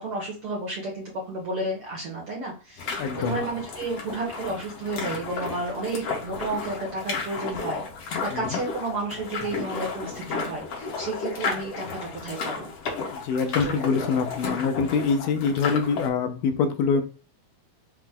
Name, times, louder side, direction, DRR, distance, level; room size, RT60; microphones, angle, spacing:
voice 1, 0.0-12.7 13.6-13.8, right 2 dB, 65° right, -3 dB, 1.4 m, -32 dB
sound 1, 2.8-16.1, left 4 dB, 60° left, 1.7 m, -33 dB
voice 2, 3.0-3.4 8.3-8.6 13.1-17.0, left 5 dB, 85° left, 7 dB, 2.2 m, -25 dB
5.8 x 2.1 x 3.6 m, 0.35 s
omnidirectional pair, 3.8 m